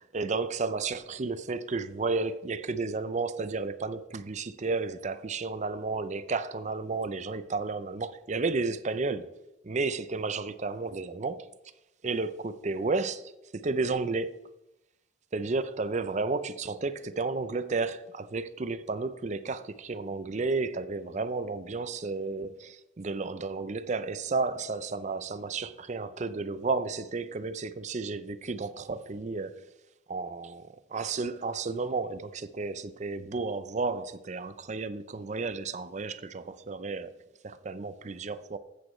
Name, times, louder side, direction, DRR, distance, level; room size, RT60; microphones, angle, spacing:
voice 1, 0.0-11.5 12.0-14.4 15.3-29.7 30.1-37.2 37.4-38.6, right 3 dB, 40° right, 0.5 m, -32 dB
14.0 x 8.5 x 3.1 m
head